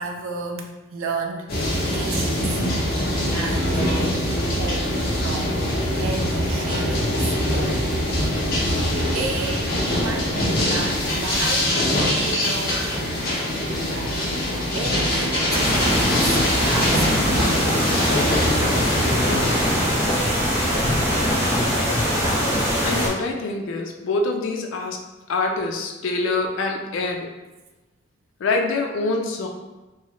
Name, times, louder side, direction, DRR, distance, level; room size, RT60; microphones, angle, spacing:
voice 1, 0.0-1.5 1.9-2.6 3.3-4.9 5.2-5.6 5.9-7.9 8.6-11.8 12.2-13.2 13.9-14.4 14.7-17.5, right 4 dB, 80° right, 3 dB, 0.4 m, -33 dB
sound 1, 1.5-19.9, left 1 dB, 45° left, 0.7 m, -23 dB
sound 2, 2.8-11.6, equal, 15° left, 0.6 m, -36 dB
sound 3, 15.5-23.1, equal, 15° right, 0.8 m, -22 dB
voice 2, 22.8-25.0 25.3-27.3 28.4-29.5, left 3 dB, 70° left, 2 dB, 0.3 m, -25 dB
3.0 x 2.2 x 2.9 m, 1.1 s
head